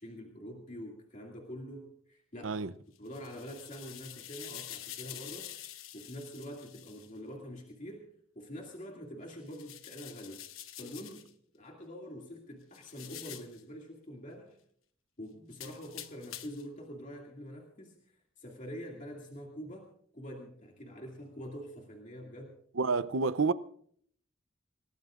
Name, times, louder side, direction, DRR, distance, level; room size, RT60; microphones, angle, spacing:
voice 1, 0.0-2.6 3.0-5.5 5.9-8.1 8.4-10.4 10.8-11.3 11.5-14.6 15.2-17.9 18.4-19.9 20.1-22.6, equal, 40° left, 2.3 m, -45 dB
sound 1, 3.0-7.1 9.5-11.3 12.7-13.6 15.5-16.7, left 12 dB, 85° left, 1.0 m, -47 dB
voice 2, 22.8-23.5, right 4 dB, 70° right, 0.6 m, -28 dB
28.5 x 18.0 x 2.5 m
head